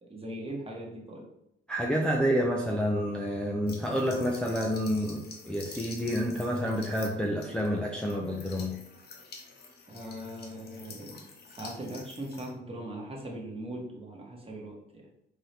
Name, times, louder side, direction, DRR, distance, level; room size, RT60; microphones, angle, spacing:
voice 1, 0.0-1.3 9.9-15.1, right 1 dB, 30° right, -1 dB, 1.1 m, -40 dB
voice 2, 1.7-8.8, equal, 5° left, -2 dB, 0.5 m, -29 dB
sound 1, 3.7-12.5, left 4 dB, 55° left, 0.8 m, -48 dB
3.9 x 2.7 x 3.2 m, 0.83 s
cardioid pair, 90°, 20 cm